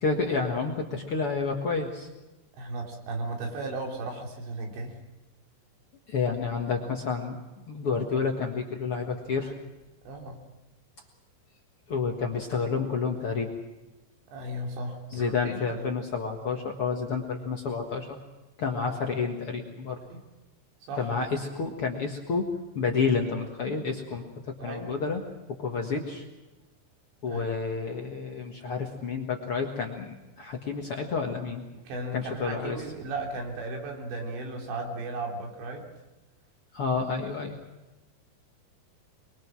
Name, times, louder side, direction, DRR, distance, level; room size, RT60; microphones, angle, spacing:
voice 1, 0.0-2.1 6.1-9.5 11.9-13.5 15.1-18.2 18.6-20.0 21.0-22.5 22.8-25.2 25.6-26.2 27.2-31.6 32.1-32.8 36.7-37.6, left 5 dB, 55° left, 2 dB, 1.6 m, -30 dB
voice 2, 2.6-5.0 10.1-10.4 14.3-15.8 20.1-20.2 20.9-21.1 24.6-25.0 27.3-27.6 31.9-35.9, right 2 dB, 85° right, 1 dB, 5.6 m, -35 dB
23.5 x 23.0 x 6.2 m, 1.1 s
omnidirectional pair, 4.9 m